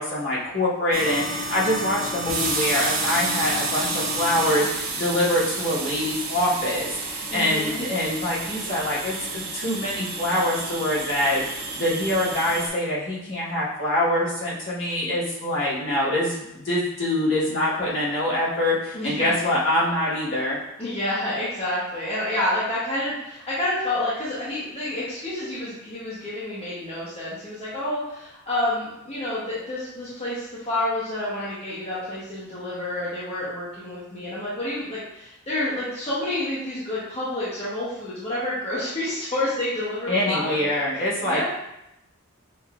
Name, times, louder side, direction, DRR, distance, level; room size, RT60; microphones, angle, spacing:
voice 1, 0.0-20.6 40.1-41.4, left 1 dB, 60° left, -8 dB, 1.3 m, -25 dB
sound 1, 0.9-12.7, right 2 dB, 75° right, 0.9 m, -30 dB
voice 2, 7.3-7.8 18.9-19.3 20.8-40.7 41.3-41.4, left 1 dB, 30° left, -10 dB, 0.8 m, -29 dB
5.7 x 2.6 x 2.3 m, 0.87 s
head